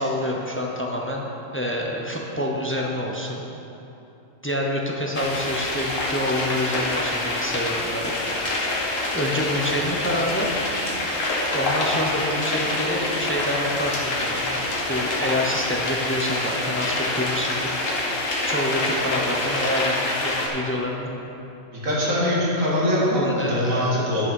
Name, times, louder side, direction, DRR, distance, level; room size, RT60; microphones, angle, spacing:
voice 1, 0.0-3.4 4.4-8.1 9.1-10.5 11.5-14.6 14.9-17.8 18.4-21.1 23.1-24.1, left 1 dB, 10° left, -1 dB, 0.7 m, -27 dB
sound 1, 5.1-20.5, left 2 dB, 70° left, 1.7 m, -26 dB
voice 2, 21.7-24.2, left 1 dB, 75° right, -7 dB, 2.7 m, -22 dB
11.0 x 6.3 x 5.4 m, 2.9 s
omnidirectional pair, 1.4 m